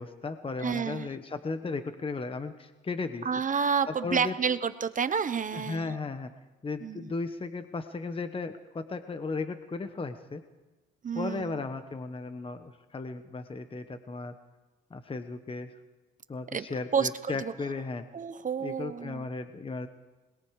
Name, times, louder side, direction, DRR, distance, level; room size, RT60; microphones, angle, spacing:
voice 1, 0.0-3.3 3.9-4.3 5.5-6.3 6.6-10.4 11.1-14.3 14.9-15.8 16.3-18.1 18.6-19.9, left 3 dB, 25° left, 9 dB, 1.2 m, -35 dB
voice 2, 0.6-1.1 3.2-5.9 6.8-7.1 11.0-11.6 16.5-16.7 16.9-17.5 18.1-19.2, right 6 dB, 40° right, 12 dB, 1.0 m, -30 dB
26.5 x 21.0 x 4.9 m, 1.2 s
cardioid pair, 90°, 20 cm